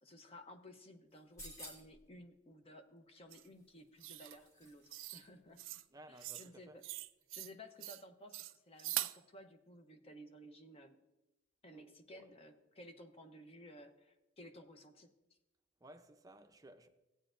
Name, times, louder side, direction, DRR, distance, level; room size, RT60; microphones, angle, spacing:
voice 1, 0.0-5.6 6.1-6.8 7.3-11.0 11.6-15.1, equal, 30° left, 0.7 m, -56 dB
sound 1, 1.1-2.0 3.5-5.3 5.6-5.7, equal, 15° left, 1.4 m, -55 dB
sound 2, 3.3-3.4 4.0-4.4 4.9-5.2 5.6-5.8 6.2-6.5 6.8-7.5 7.8-8.0 8.3-9.2, right 16 dB, 80° right, 0.4 m, -42 dB
voice 2, 5.9-6.8 11.7-12.3 15.8-16.9, right 1 dB, 20° right, 0.5 m, -58 dB
15.0 x 9.0 x 2.5 m
head